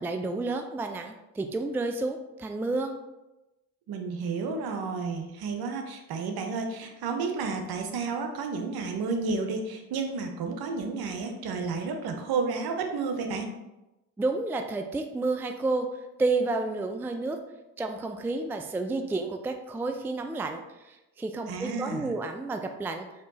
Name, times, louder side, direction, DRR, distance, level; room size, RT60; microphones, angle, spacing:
voice 1, 0.0-2.9 14.2-15.9 16.2-17.4 17.8-20.6 20.9-23.1, right 3 dB, 5° right, 5 dB, 0.4 m, -30 dB
voice 2, 3.9-13.5 21.5-22.1, right 4 dB, 60° right, 4 dB, 0.8 m, -31 dB
4.3 x 2.9 x 4.0 m, 0.97 s
hypercardioid pair, 45°, 42 cm